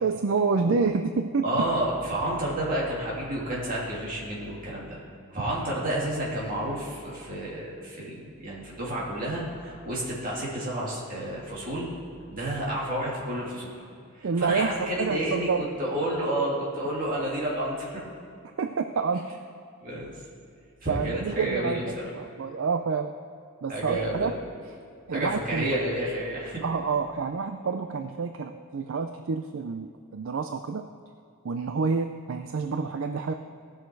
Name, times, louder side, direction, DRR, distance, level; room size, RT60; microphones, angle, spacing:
voice 1, 0.0-1.5 14.2-15.6 18.6-19.3 20.9-23.1 23.6-24.3 25.1-25.8 26.6-30.9 31.4-33.3, right 5 dB, 60° right, 7 dB, 0.4 m, -28 dB
voice 2, 1.4-5.0 5.3-11.9 12.3-13.7 14.1-18.0 19.8-20.1 20.8-21.8 23.7-24.3 25.1-26.6, right 1 dB, 40° right, -5 dB, 2.8 m, -30 dB
17.5 x 6.5 x 4.6 m, 2.4 s
head